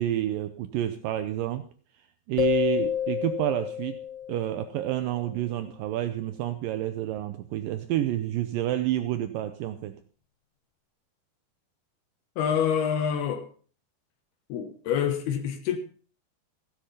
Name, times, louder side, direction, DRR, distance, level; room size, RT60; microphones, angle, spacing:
voice 1, 0.0-1.7 2.3-4.0 4.3-10.0, right 13 dB, 75° right, 2.3 m, -29 dB
sound 1, 2.4-5.0, left 11 dB, 65° left, 2.2 m, -29 dB
voice 2, 12.4-13.5 14.5-15.8, left 8 dB, 85° left, 3.3 m, -27 dB
16.0 x 10.0 x 5.6 m
omnidirectional pair, 4.4 m